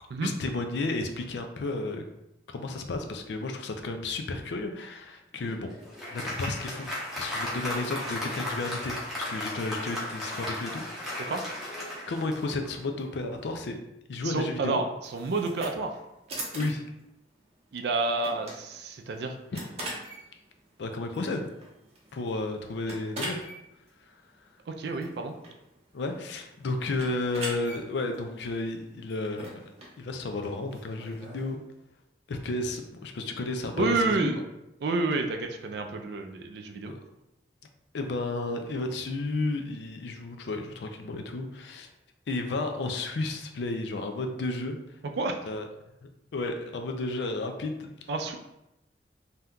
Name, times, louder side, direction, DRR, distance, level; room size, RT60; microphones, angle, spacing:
voice 1, 0.2-2.0 2.5-5.7 6.1-6.9 7.2-10.8 11.8-13.8 14.1-14.8 16.5-16.8 19.5-19.7 20.8-21.5 22.1-23.5 25.9-31.6 32.3-34.3 36.8-37.0 37.9-41.9 42.3-44.8 45.4-45.7 46.3-47.9, left 2 dB, 70° left, 5 dB, 0.4 m, -32 dB
Applause, 5.4-12.9, left 1 dB, ahead, 0.7 m, -35 dB
voice 2, 14.2-14.9 15.1-15.9 17.7-19.4 24.8-25.3 33.8-34.4 34.8-36.9 45.2-45.3 48.1-48.3, right 3 dB, 60° right, 4 dB, 0.4 m, -29 dB
sound 1, 15.0-31.5, right 1 dB, 35° right, 0.7 m, -43 dB
2.7 x 2.2 x 3.6 m, 0.88 s
head